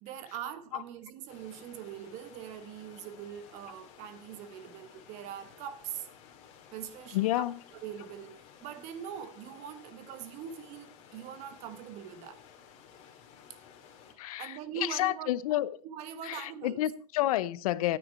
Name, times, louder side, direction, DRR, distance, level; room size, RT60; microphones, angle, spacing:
voice 1, 0.0-6.1 6.7-12.4 14.4-15.3 15.8-16.8, right 9 dB, 40° right, 1.2 m, -42 dB
sound 1, 1.3-14.1, left 8 dB, 35° left, 2.4 m, -55 dB
voice 2, 7.1-7.6 14.2-14.5 14.8-15.7 16.2-18.0, left 14 dB, 80° left, 0.7 m, -29 dB
13.0 x 9.4 x 4.3 m
supercardioid pair, 170°, 18 cm